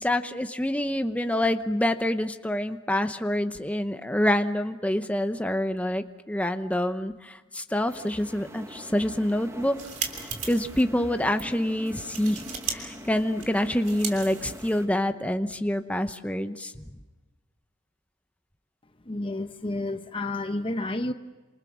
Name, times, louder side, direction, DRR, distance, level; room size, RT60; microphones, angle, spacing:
voice 1, 0.0-9.8 10.2-16.7, left 1 dB, 5° left, 7 dB, 0.9 m, -27 dB
sound 1, 7.9-14.9, equal, 15° right, 1.6 m, -44 dB
sound 2, 9.5-10.8 11.3-11.5 11.9-12.8 13.0-15.0, right 6 dB, 40° right, 3.3 m, -36 dB
voice 2, 19.1-21.1, left 2 dB, 25° left, 9 dB, 0.9 m, -30 dB
28.5 x 27.5 x 6.2 m, 1.2 s
head